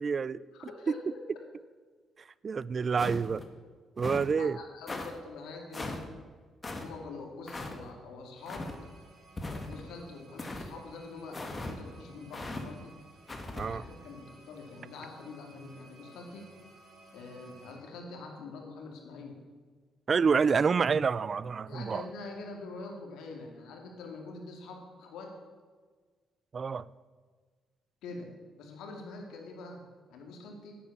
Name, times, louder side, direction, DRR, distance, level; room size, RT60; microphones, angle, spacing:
voice 1, 0.0-0.4 2.4-3.4 4.0-4.6 13.6-13.9 20.1-22.1 26.5-26.9, right 5 dB, 40° right, 20 dB, 0.3 m, -28 dB
voice 2, 0.5-1.4 4.4-6.0 6.8-8.7 9.5-12.9 13.5-16.5 17.1-19.4 21.7-25.3 28.0-28.3 28.6-29.8 30.1-30.8, left 3 dB, 85° left, 2 dB, 2.4 m, -45 dB
sound 1, 3.0-3.5 4.0-4.3 4.9-5.1 5.7-6.0 6.6-6.9 7.5-7.8 8.5-8.8 9.4-9.9 10.4-10.7 11.3-11.8 12.3-12.6 13.3-13.7, left 2 dB, 25° left, 1.6 m, -38 dB
sound 2, 8.4-17.7, right 3 dB, 60° right, 3.5 m, -57 dB
10.5 x 8.4 x 7.2 m, 1.5 s
cardioid pair, 90°, 0 cm